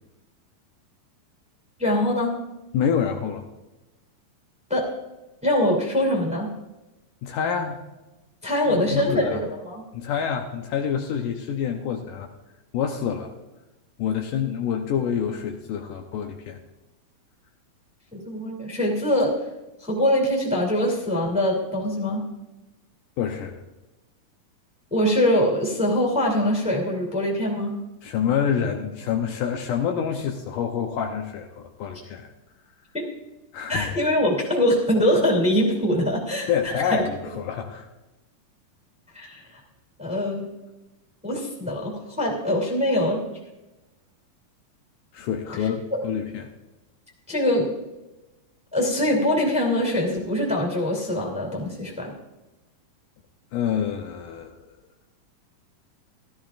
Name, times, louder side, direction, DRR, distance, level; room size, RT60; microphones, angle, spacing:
voice 1, 1.8-2.3 4.7-4.8 5.4-6.5 8.4-9.8 18.3-19.4 19.8-22.2 24.9-27.7 32.9-33.0 33.7-37.0 39.1-39.6 40.0-40.5 41.2-43.2 47.3-47.7 48.7-52.1, left 1 dB, ahead, -1 dB, 2.1 m, -23 dB
voice 2, 2.7-3.4 7.2-7.8 8.7-9.4 9.9-12.3 12.7-13.3 14.0-16.6 23.2-23.6 28.0-32.3 33.5-33.9 36.5-37.9 45.1-46.5 53.5-54.6, left 7 dB, 75° left, 3 dB, 2.2 m, -27 dB
16.0 x 13.0 x 2.5 m, 1.0 s
omnidirectional pair, 4.1 m